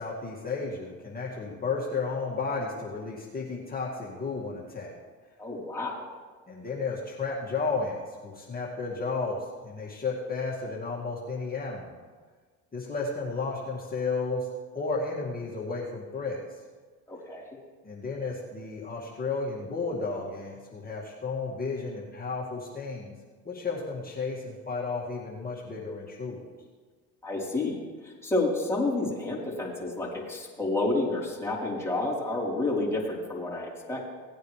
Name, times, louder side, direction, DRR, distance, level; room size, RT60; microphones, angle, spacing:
voice 1, 0.0-5.0 6.5-12.0 12.7-14.5 14.7-16.6 17.8-23.2 23.4-26.4, left 4 dB, 25° left, -4 dB, 2.2 m, -33 dB
voice 2, 5.4-6.1 17.1-17.4 27.2-27.8 28.0-34.1, left 2 dB, 5° left, -6 dB, 3.9 m, -30 dB
18.0 x 9.1 x 3.3 m, 1.5 s
supercardioid pair, 80°, 35 cm